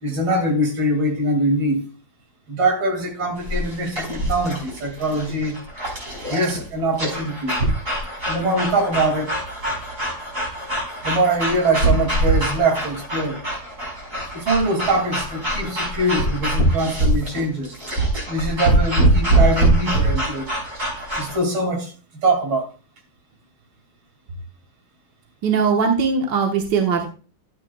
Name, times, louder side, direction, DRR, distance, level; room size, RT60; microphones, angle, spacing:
voice 1, 0.0-1.9 2.5-5.6 6.3-7.6 8.3-9.4 11.0-13.4 14.3-17.8 18.3-20.5 21.2-21.9 22.2-22.7, right 2 dB, 80° right, 3.4 m, -23 dB
sound 1, 3.4-21.4, right 1 dB, 40° right, 5.3 m, -23 dB
voice 2, 25.4-27.1, right 5 dB, 60° right, 2.0 m, -20 dB
13.0 x 9.4 x 2.3 m
omnidirectional pair, 2.2 m